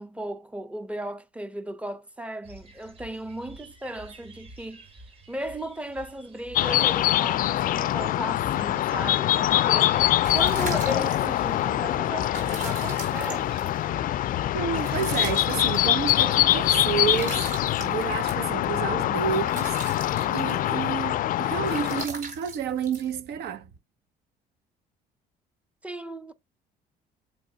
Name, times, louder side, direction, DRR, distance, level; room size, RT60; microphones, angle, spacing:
voice 1, 0.0-4.9 5.3-13.8 25.8-26.3, right 1 dB, 5° right, 0.6 m, -36 dB
sound 1, 2.4-17.5, right 2 dB, 35° right, 2.0 m, -49 dB
sound 2, 6.5-22.0, left 13 dB, 55° left, 0.4 m, -24 dB
sound 3, 9.9-23.7, right 4 dB, 55° right, 4.1 m, -41 dB
voice 2, 14.5-17.5 17.8-23.7, right 8 dB, 75° right, 0.9 m, -30 dB
7.6 x 3.1 x 3.9 m
cardioid pair, 110°, 17 cm